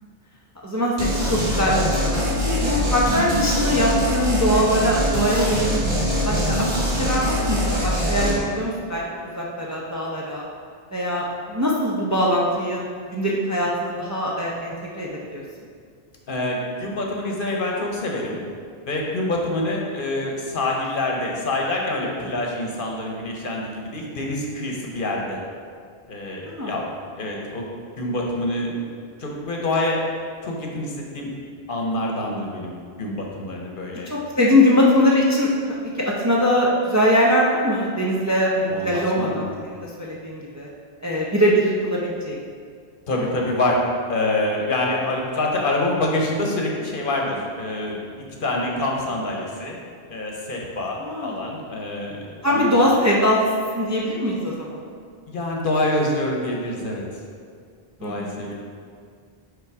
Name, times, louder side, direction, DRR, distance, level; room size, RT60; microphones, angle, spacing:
voice 1, 0.6-5.8 6.2-9.0 9.3-10.5 10.9-12.8 13.1-15.4 26.5-26.8 34.1-35.5 36.0-40.7 41.0-42.4 51.0-51.4 52.4-53.4 53.7-54.8 58.0-58.4, equal, 20° right, -4 dB, 0.5 m, -22 dB
sound 1, 1.0-8.4, equal, 50° right, 1.5 m, -23 dB
voice 2, 16.3-18.4 18.9-25.4 26.1-26.9 27.1-27.7 28.0-28.7 29.2-30.0 30.4-31.3 31.7-32.7 33.0-34.1 38.7-39.5 43.1-43.8 44.1-48.0 48.4-49.8 50.1-52.1 52.5-52.7 55.3-57.2 58.0-58.5, left 1 dB, 60° left, -1 dB, 1.0 m, -26 dB
5.8 x 3.8 x 4.6 m, 2.1 s
omnidirectional pair, 1.0 m